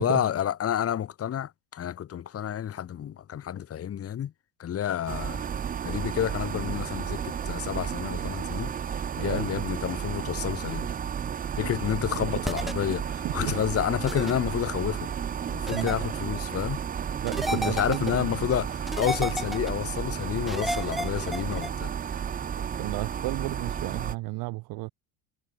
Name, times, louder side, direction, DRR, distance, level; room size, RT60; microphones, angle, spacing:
voice 1, 0.0-4.3 4.6-5.4 5.8-10.9 11.6-15.1 15.5-16.8 17.5-21.9, left 10 dB, 35° left, 1.9 m, -30 dB
sound 1, 5.1-24.1, right 8 dB, 20° right, 0.6 m, -32 dB
voice 2, 9.1-9.6 12.2-12.4 13.1-13.6 15.7-15.9 17.2-18.5 22.5-24.9, right 22 dB, 55° right, 0.9 m, -33 dB
sound 2, 12.4-12.7 14.1-14.3 15.7-15.9 17.3-18.1 18.9-19.7 20.5-21.7, equal, ahead, 1.4 m, -31 dB
supercardioid pair, 120°, 43 cm